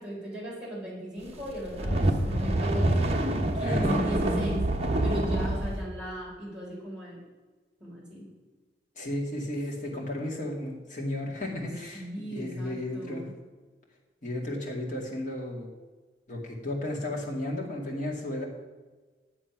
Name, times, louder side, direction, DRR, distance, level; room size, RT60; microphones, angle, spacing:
voice 1, 0.0-3.1 3.5-4.6 5.0-7.2 7.8-8.3 11.9-13.3, right 1 dB, 5° right, -7 dB, 3.9 m, -37 dB
sound 1, 1.5-5.8, right 1 dB, 35° right, 1.1 m, -26 dB
voice 2, 3.6-4.1 9.0-13.3 14.2-15.7 16.3-18.4, left 1 dB, 45° left, -1 dB, 2.3 m, -34 dB
10.5 x 7.2 x 6.0 m, 1.3 s
head